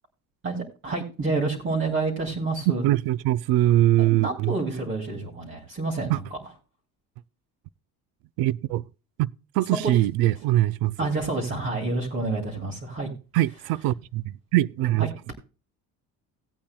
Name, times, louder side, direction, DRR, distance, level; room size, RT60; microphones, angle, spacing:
voice 1, 0.4-2.9 4.0-6.4 11.0-13.1 15.0-15.1, right 3 dB, 35° right, 2.8 m, -28 dB
voice 2, 2.8-4.5 6.1-6.2 8.4-8.9 9.2-11.0 13.3-15.1, right 15 dB, 90° right, 0.5 m, -22 dB
17.5 x 8.7 x 2.3 m
cardioid pair, 155°, 35 cm